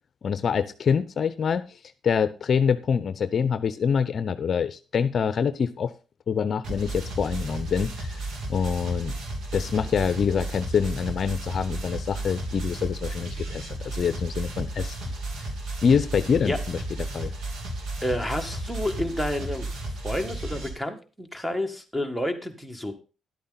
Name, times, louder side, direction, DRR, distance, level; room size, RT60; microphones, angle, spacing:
voice 1, 0.2-1.6 2.0-5.9 6.3-8.2 8.5-9.1 9.5-15.1 15.8-17.3, left 6 dB, 50° left, 13 dB, 0.6 m, -25 dB
sound 1, 6.6-20.7, right 2 dB, 70° right, 2.8 m, -33 dB
voice 2, 18.0-19.7 20.0-22.9, left 1 dB, ahead, 8 dB, 1.7 m, -29 dB
11.0 x 8.5 x 3.9 m, 0.33 s
cardioid pair, 90°, 0 cm